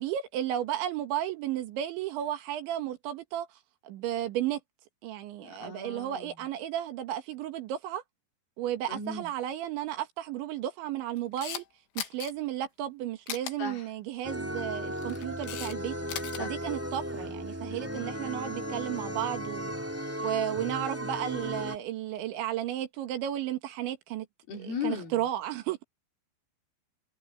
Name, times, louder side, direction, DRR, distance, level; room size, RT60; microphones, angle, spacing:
voice 1, 0.0-3.5 3.8-4.6 5.0-8.0 8.6-11.7 12.0-16.0 16.4-19.7 20.2-24.3 24.8-25.8, right 12 dB, 80° right, 4.0 m, -33 dB
voice 2, 5.4-6.5 8.9-9.3 13.6-13.8 16.4-16.5 24.5-25.2, left 5 dB, 55° left, 5.3 m, -37 dB
Camera, 11.2-11.6 12.0-12.3 13.3-13.5 14.8-15.7 16.0-16.4, left 11 dB, 75° left, 4.1 m, -37 dB
sound 1, 14.2-21.8, equal, 5° right, 1.2 m, -36 dB
omnidirectional pair, 5.3 m